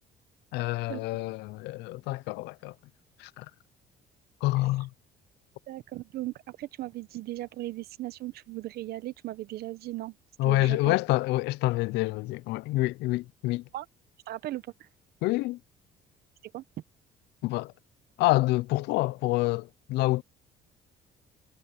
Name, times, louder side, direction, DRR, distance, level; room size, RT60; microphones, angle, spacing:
voice 1, 0.5-2.7 3.2-3.5 4.4-4.9 10.4-13.6 15.2-15.6 17.4-17.7 18.2-20.2, left 19 dB, 85° left, 0.5 m, -27 dB
voice 2, 5.7-10.1 10.4-11.0 13.7-13.9 14.3-14.9 16.5-16.6, right 16 dB, 70° right, 0.9 m, -37 dB
cardioid pair, 110°, 17 cm